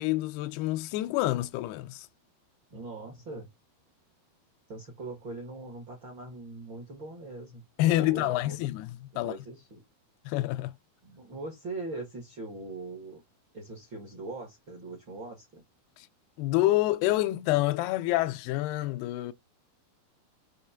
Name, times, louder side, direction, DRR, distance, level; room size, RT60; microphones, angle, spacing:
voice 1, 0.0-2.1 7.8-9.3 10.3-10.7 16.0-16.1 16.4-19.3, left 16 dB, 85° left, 2.6 m, -27 dB
voice 2, 2.7-3.5 4.7-8.6 9.1-9.8 11.0-13.2 13.5-15.6, right 2 dB, 55° right, 1.4 m, -41 dB
6.6 x 3.1 x 5.7 m
omnidirectional pair, 4.6 m